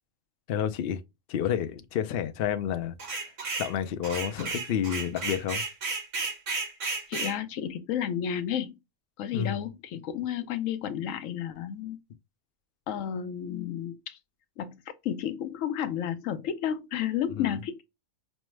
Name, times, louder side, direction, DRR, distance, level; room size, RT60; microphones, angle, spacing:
voice 1, 0.5-1.0 1.3-3.3 3.6-5.6 9.3-9.6 17.3-17.6, left 9 dB, 60° left, 0.6 m, -30 dB
sound 1, 3.0-3.7 4.0-7.4, right 4 dB, 65° right, 1.7 m, -33 dB
voice 2, 7.1-8.8 9.2-12.0 12.9-14.2 14.6-17.8, left 9 dB, 80° left, 1.0 m, -32 dB
5.3 x 2.0 x 3.1 m
omnidirectional pair, 1.4 m